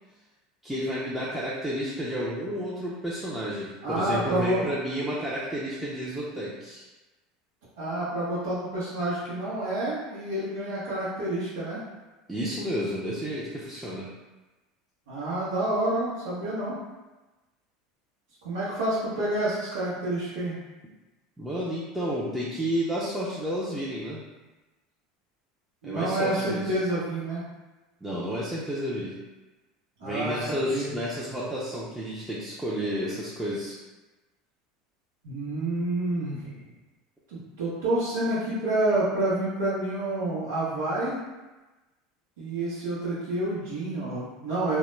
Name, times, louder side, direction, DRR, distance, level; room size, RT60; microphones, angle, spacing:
voice 1, 0.6-6.8 12.3-14.1 21.4-24.2 25.8-26.7 28.0-29.2 30.0-33.8, equal, 5° right, -9 dB, 0.5 m, -31 dB
voice 2, 3.8-4.6 7.8-11.8 15.1-16.8 18.4-20.6 25.8-27.4 30.0-30.9 35.2-36.6 37.3-41.2 42.4-44.8, right 1 dB, 85° right, -11 dB, 0.7 m, -28 dB
2.2 x 2.0 x 3.1 m, 1.1 s
supercardioid pair, 105°, 0 cm